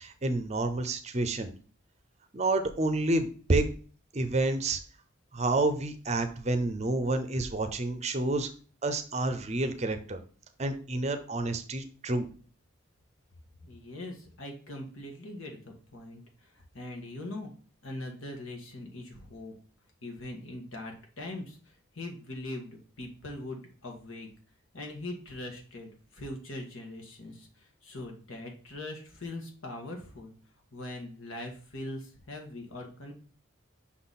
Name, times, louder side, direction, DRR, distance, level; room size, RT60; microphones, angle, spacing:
voice 1, 0.0-1.5 2.3-3.7 4.1-4.8 5.3-8.5 8.8-10.2 10.6-12.3, right 2 dB, 30° right, 9 dB, 0.6 m, -29 dB
voice 2, 13.6-17.5 17.8-19.5 20.0-24.3 24.7-30.3 30.7-33.1, left 1 dB, 75° left, 2 dB, 1.6 m, -41 dB
5.8 x 4.0 x 4.1 m, 0.41 s
head